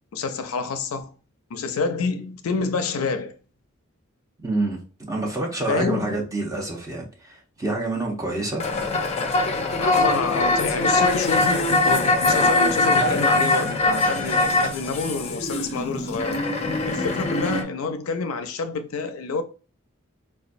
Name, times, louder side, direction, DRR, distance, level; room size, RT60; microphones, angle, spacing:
voice 1, 0.1-1.1 1.5-3.3 5.7-6.1 9.8-16.4 16.9-19.4, left 4 dB, 85° left, 0.4 m, -28 dB
voice 2, 4.4-4.8 5.1-8.6, right 2 dB, 15° right, 0.8 m, -27 dB
sound 1, 8.6-17.6, left 2 dB, 30° left, 0.4 m, -22 dB
3.9 x 2.3 x 2.5 m
head